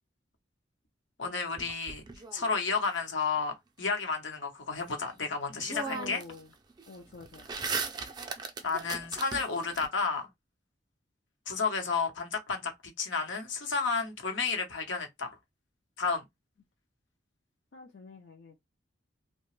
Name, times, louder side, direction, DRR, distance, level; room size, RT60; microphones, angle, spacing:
voice 1, 1.2-2.0 2.3-6.2 8.6-10.3 11.5-12.7 13.0-15.4 16.0-16.2, left 4 dB, 80° left, 0.9 m, -31 dB
sound 1, 1.6-2.9 5.1-5.2 5.6-6.4 6.7-9.9, right 4 dB, 20° right, 0.4 m, -38 dB
voice 2, 5.8-6.5 6.9-7.5 17.7-18.6, left 3 dB, 65° left, 0.5 m, -46 dB
2.8 x 2.1 x 3.1 m
head